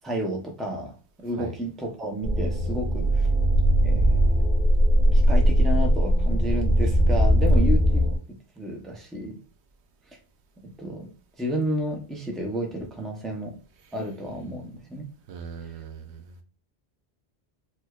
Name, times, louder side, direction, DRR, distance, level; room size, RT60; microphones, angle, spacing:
voice 1, 0.0-3.3 3.8-4.5 5.1-9.4 10.6-11.1 11.4-13.6 13.9-15.0, equal, ahead, 0 dB, 0.5 m, -31 dB
sound 1, 2.2-8.2, equal, 45° right, 1.5 m, -20 dB
voice 2, 15.3-16.4, right 6 dB, 90° right, 6 dB, 1.0 m, -39 dB
4.6 x 2.2 x 2.3 m, 0.37 s
omnidirectional pair, 1.1 m